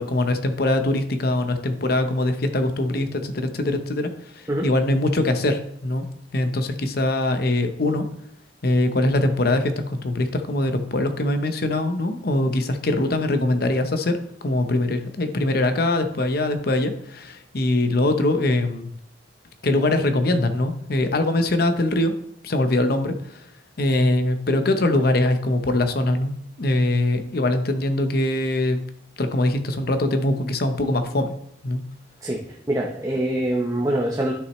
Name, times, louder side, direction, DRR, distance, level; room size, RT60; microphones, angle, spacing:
voice 1, 0.0-6.1 6.3-8.0 8.6-18.9 19.6-22.1 22.4-23.5 23.8-28.8 29.2-31.3 31.6-31.8, left 1 dB, 55° left, 8 dB, 0.8 m, -22 dB
voice 2, 32.2-34.3, right 1 dB, 15° right, -2 dB, 0.8 m, -24 dB
11.0 x 6.3 x 3.1 m, 0.71 s
head